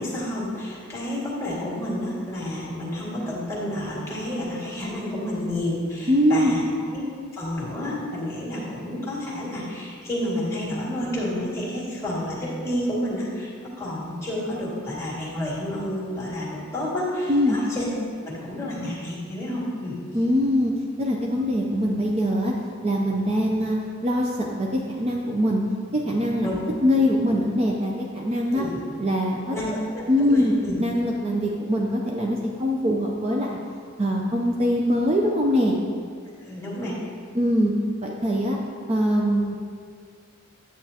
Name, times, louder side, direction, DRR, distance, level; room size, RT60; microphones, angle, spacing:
voice 1, 0.0-6.6 6.9-7.0 7.3-17.9 18.2-20.0 26.4-26.6 28.5-28.8 29.5-30.7 36.4-37.0, left 1 dB, 15° left, -6 dB, 1.9 m, -30 dB
voice 2, 6.1-6.6 17.3-17.6 20.1-22.5 22.8-25.6 25.9-26.6 26.8-28.7 29.0-29.5 30.1-33.6 34.0-35.8 37.4-37.7 38.0-38.6 38.9-39.6, equal, 30° right, -1 dB, 0.5 m, -23 dB
9.0 x 8.4 x 2.8 m, 2.1 s
head